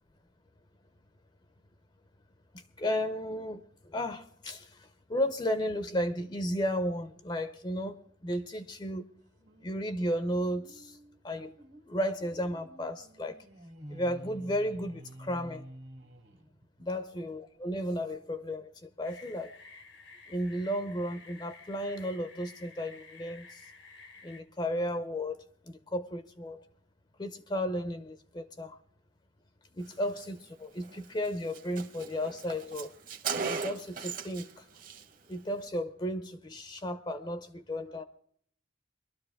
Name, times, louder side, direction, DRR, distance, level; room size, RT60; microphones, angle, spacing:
voice 1, 2.5-9.1 9.6-11.0 11.2-11.6 11.9-13.4 13.9-15.6 16.8-19.5 20.3-23.6 24.2-25.4 25.7-26.6 27.2-28.8 29.7-32.9 33.5-34.7 35.3-38.0, equal, 25° left, 10 dB, 0.6 m, -34 dB
sound 1, 9.4-16.9, right 1 dB, 70° right, 2.0 m, -51 dB
sound 2, 19.0-24.4, left 3 dB, 90° left, 1.5 m, -52 dB
Car, 30.8-31.0 31.3-31.4 31.5-34.5 34.8-35.0, right 5 dB, 45° right, 1.1 m, -37 dB
22.0 x 12.5 x 3.5 m, 0.64 s
head